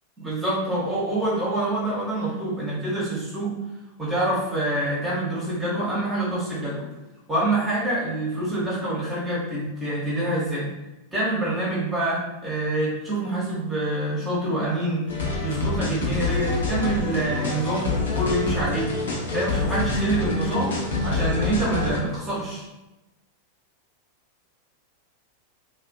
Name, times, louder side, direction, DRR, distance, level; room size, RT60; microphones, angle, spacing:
voice 1, 0.2-3.5 4.0-6.8 7.3-10.7 11.1-15.1 15.4-18.9 19.3-20.7 21.0-22.6, right 1 dB, 15° right, -8 dB, 0.9 m, -26 dB
sound 1, 15.1-22.0, left 3 dB, 65° left, 0.6 m, -26 dB
2.4 x 2.3 x 2.4 m, 1.0 s
figure-of-eight pair, 90°, 0 cm